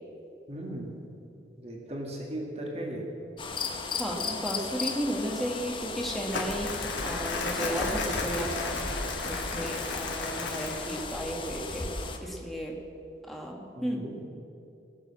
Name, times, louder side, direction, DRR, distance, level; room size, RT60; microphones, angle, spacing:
voice 1, 0.5-1.0 1.6-3.1 13.8-14.2, right 1 dB, 35° right, -1 dB, 1.9 m, -37 dB
sound 1, 3.4-12.2, left 4 dB, 25° left, 0.9 m, -36 dB
voice 2, 3.9-8.8 9.2-12.8 13.3-14.0, equal, ahead, -1 dB, 1.4 m, -34 dB
Crumpling crinkling, 6.3-11.2, left 3 dB, 80° left, 2.2 m, -34 dB
19.5 x 6.9 x 7.2 m, 2.7 s
head